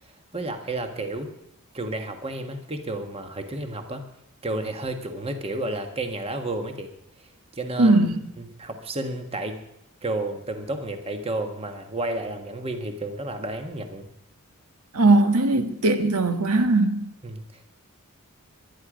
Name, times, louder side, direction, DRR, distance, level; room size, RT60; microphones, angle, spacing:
voice 1, 0.3-1.3 1.7-4.1 4.4-6.9 7.2-8.0 8.4-9.6 10.0-14.1 17.2-17.6, right 2 dB, 25° right, 6 dB, 1.5 m, -31 dB
voice 2, 7.8-8.2 14.9-17.0, right 2 dB, 80° right, 7 dB, 1.5 m, -19 dB
23.0 x 10.5 x 5.1 m, 0.85 s
head